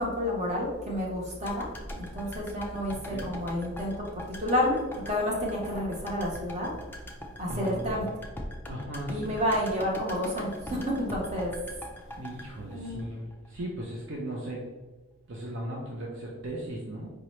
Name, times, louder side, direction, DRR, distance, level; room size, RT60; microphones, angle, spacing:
voice 1, 0.0-3.9 4.4-6.7 7.4-8.1 9.1-11.5 12.7-13.1, left 1 dB, 30° right, -3 dB, 1.0 m, -30 dB
sound 1, 1.4-13.6 13.9-14.0, equal, 10° left, 0.4 m, -42 dB
voice 2, 2.9-3.3 7.4-8.1 8.7-9.4 12.2-14.6 15.3-17.1, right 1 dB, 55° right, -2 dB, 0.6 m, -37 dB
4.8 x 2.9 x 3.1 m, 1.3 s
head